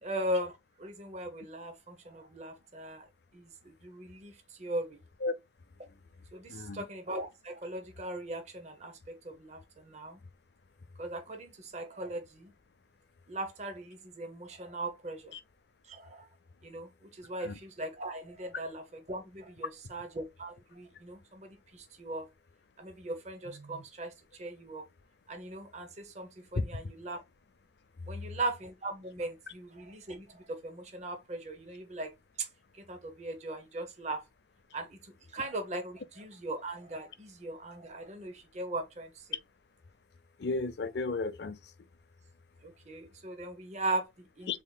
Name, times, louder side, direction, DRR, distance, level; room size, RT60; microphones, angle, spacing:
voice 1, 0.0-3.1 3.3-5.0 6.3-10.2 11.0-12.5 13.3-15.3 15.9-16.3 16.6-22.3 22.8-24.1 24.4-24.8 25.3-27.2 28.1-32.1 32.4-32.5 32.8-34.2 34.7-39.2 42.6-44.6, right 2 dB, 40° right, 0.7 m, -39 dB
voice 2, 6.5-6.8 17.4-17.5 26.5-26.7 40.4-41.6 44.5-44.6, left 3 dB, 60° left, 0.5 m, -33 dB
3.7 x 3.5 x 2.2 m
head